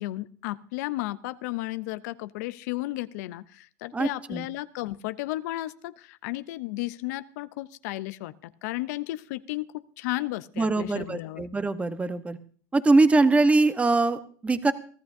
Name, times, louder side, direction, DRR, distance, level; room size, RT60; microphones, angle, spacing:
voice 1, 0.0-11.4, left 18 dB, 70° left, 14 dB, 0.6 m, -34 dB
voice 2, 3.9-4.5 10.6-12.4 12.7-14.7, right 3 dB, 15° right, 11 dB, 1.0 m, -22 dB
23.0 x 13.5 x 2.7 m, 0.43 s
supercardioid pair, 105°, 9 cm